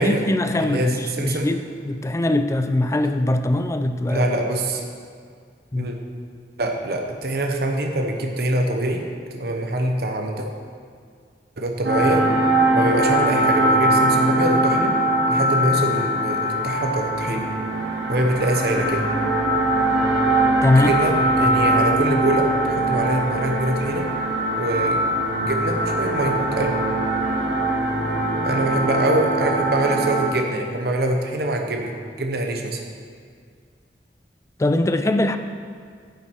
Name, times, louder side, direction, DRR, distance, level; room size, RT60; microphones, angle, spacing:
voice 1, 0.0-4.2 5.7-5.9 20.6-21.0 34.6-35.4, left 1 dB, 15° left, 9 dB, 0.3 m, -21 dB
voice 2, 0.6-1.5 4.1-4.9 5.8-6.0 6.6-9.0 9.3-10.5 11.6-12.2 12.7-14.9 15.3-17.5 18.1-19.0 20.8-24.1 24.6-25.0 25.4-26.8 28.4-31.9 32.2-32.8, right 1 dB, 60° right, 3 dB, 0.8 m, -24 dB
sound 1, 11.8-30.3, right 1 dB, 85° right, 1.5 m, -21 dB
9.0 x 7.4 x 4.4 m, 2.1 s
head